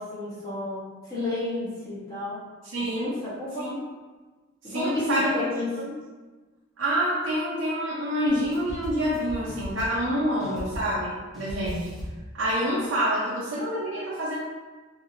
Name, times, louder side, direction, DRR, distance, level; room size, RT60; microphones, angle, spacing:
voice 1, 0.0-2.4 3.0-3.7 4.6-5.7, left 1 dB, 20° left, -10 dB, 1.2 m, -31 dB
voice 2, 2.6-3.2 3.6-3.8 4.6-5.3 6.8-11.9 12.3-14.4, equal, 70° right, -7 dB, 0.6 m, -27 dB
sound 1, 8.3-10.1 10.4-11.1 11.3-12.3, equal, ahead, 0.8 m, -38 dB
3.2 x 2.7 x 2.8 m, 1.3 s
head